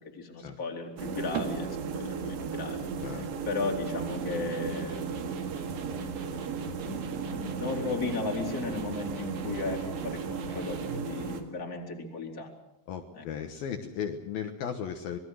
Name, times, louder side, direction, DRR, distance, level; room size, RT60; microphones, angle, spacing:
voice 1, 0.1-2.9 3.5-5.1 6.8-12.5 13.1-13.2, left 3 dB, 25° left, 1 dB, 3.4 m, -35 dB
sound 1, 1.0-11.4, right 5 dB, 85° right, 4.0 m, -35 dB
Electric guitar, 3.8-11.1, right 6 dB, 55° right, 2.8 m, -42 dB
voice 2, 12.9-15.2, left 8 dB, 70° left, 4 dB, 2.9 m, -36 dB
26.0 x 20.5 x 6.4 m, 0.82 s
omnidirectional pair, 4.7 m